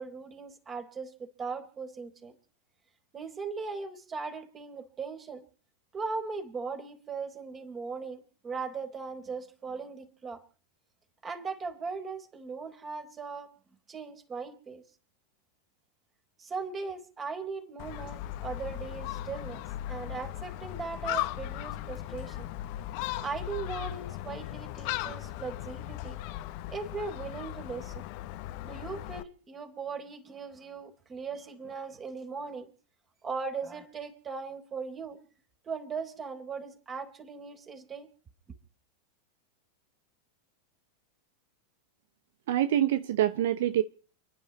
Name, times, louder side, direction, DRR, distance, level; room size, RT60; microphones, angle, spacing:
voice 1, 0.0-2.4 3.1-5.4 5.9-10.4 11.2-13.5 13.9-14.8 16.4-22.5 23.2-26.2 26.7-28.0 28.6-32.7 33.2-35.2 35.7-38.1, right 4 dB, 25° right, 4.1 m, -38 dB
Gull seagull, 17.8-29.2, left 14 dB, 55° left, 1.1 m, -37 dB
voice 2, 42.5-43.8, right 12 dB, 65° right, 0.8 m, -25 dB
29.5 x 11.0 x 4.0 m
hypercardioid pair, 95°, 0 cm